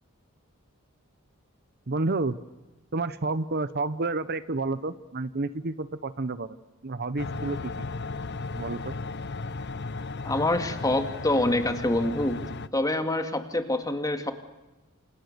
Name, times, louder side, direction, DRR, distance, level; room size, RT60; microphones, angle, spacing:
voice 1, 1.9-2.4 2.9-6.6 6.8-7.9 8.5-8.9, right 3 dB, 50° right, 14 dB, 0.9 m, -30 dB
sound 1, 7.2-12.7, left 3 dB, 55° left, 0.8 m, -35 dB
voice 2, 10.2-12.4 12.7-14.3, left 1 dB, 15° left, 7 dB, 2.2 m, -26 dB
28.5 x 27.5 x 6.8 m, 1.1 s
head